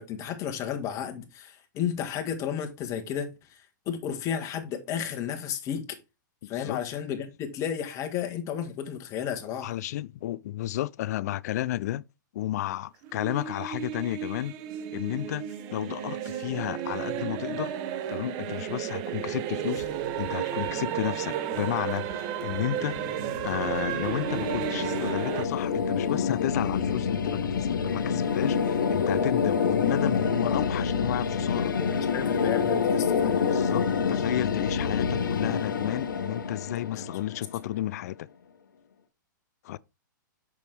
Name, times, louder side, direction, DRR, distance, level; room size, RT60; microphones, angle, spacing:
voice 1, 0.0-5.8 6.5-9.7 31.8-33.4 36.9-37.0, left 8 dB, 30° left, 1.7 m, -33 dB
voice 2, 6.4-6.8 9.6-12.0 12.3-14.6 14.9-15.5 15.7-17.7 18.1-19.9 20.2-23.1 23.4-31.8 33.3-38.3 39.6-39.8, left 14 dB, 55° left, 0.4 m, -32 dB
sound 1, 13.0-25.5, right 10 dB, 35° right, 0.8 m, -33 dB
sound 2, 19.8-24.7, left 1 dB, 70° right, 4.1 m, -50 dB
sound 3, 22.7-37.7, left 6 dB, 80° left, 1.0 m, -27 dB
6.9 x 6.1 x 3.3 m
hypercardioid pair, 130°, 11 cm